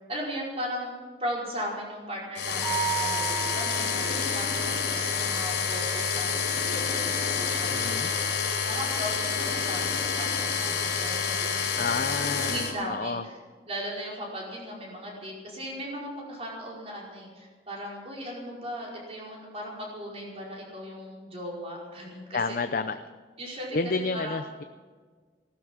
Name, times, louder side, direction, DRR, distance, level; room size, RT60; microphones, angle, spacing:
voice 1, 0.1-0.9 1.2-8.2 8.7-12.2 12.4-13.3 13.7-22.6 23.4-24.4, equal, 35° right, -3 dB, 5.1 m, -37 dB
sound 1, 2.3-12.7, left 5 dB, 90° left, 4.0 m, -28 dB
Mallet percussion, 2.6-4.4, right 11 dB, 5° right, 6.1 m, -33 dB
voice 2, 7.7-8.1 11.8-13.2 22.3-23.0 23.7-24.6, left 4 dB, 50° left, 9 dB, 0.6 m, -30 dB
16.0 x 12.0 x 7.4 m, 1.5 s
head